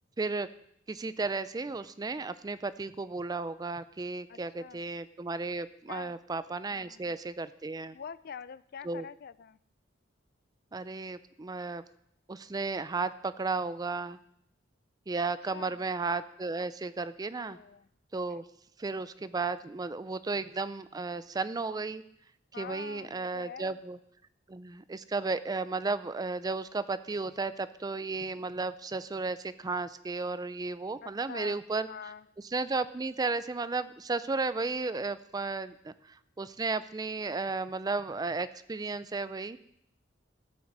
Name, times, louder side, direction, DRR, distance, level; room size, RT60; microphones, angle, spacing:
voice 1, 0.2-0.5 0.9-8.0 8.8-9.1 10.7-11.8 12.3-14.2 15.1-17.6 18.1-18.4 18.8-22.0 22.6-24.0 24.5-31.9 32.5-39.6, right 3 dB, 20° right, 14 dB, 0.4 m, -34 dB
voice 2, 4.3-4.8 5.9-6.2 6.7-7.1 7.9-9.6 15.5-15.8 17.4-17.9 22.5-23.8 28.4-28.5 31.0-31.6 31.9-32.3, left 7 dB, 50° left, 17 dB, 0.4 m, -45 dB
14.0 x 6.1 x 7.3 m, 0.74 s
head